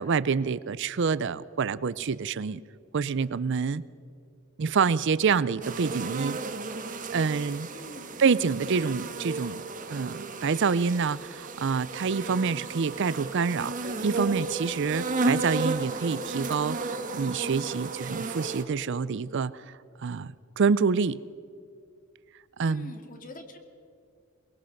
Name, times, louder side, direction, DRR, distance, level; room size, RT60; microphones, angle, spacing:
voice 1, 0.0-2.6 2.9-3.8 4.6-6.4 7.1-7.7 8.2-9.6 9.9-19.5 20.0-21.2 22.6-23.0, right 5 dB, 55° right, 18 dB, 0.5 m, -27 dB
sound 1, 5.6-18.6, right 3 dB, 40° right, 1.5 m, -33 dB
voice 2, 7.7-8.4 8.8-8.9 22.7-23.6, left 1 dB, 40° left, 6 dB, 2.2 m, -45 dB
23.0 x 20.5 x 6.5 m, 2.3 s
head